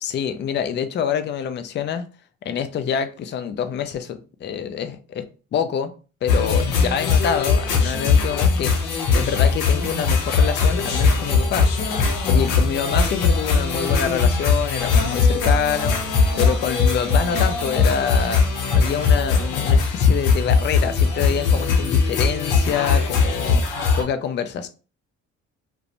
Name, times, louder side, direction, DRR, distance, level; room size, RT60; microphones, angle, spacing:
voice 1, 0.0-2.0 2.4-5.3 5.5-5.9 6.2-11.9 12.3-18.4 18.7-24.7, left 7 dB, 35° left, 0.4 m, -26 dB
sound 1, 6.3-24.0, left 5 dB, 80° left, 0.7 m, -20 dB
2.4 x 2.2 x 2.9 m
cardioid pair, 90°, 30 cm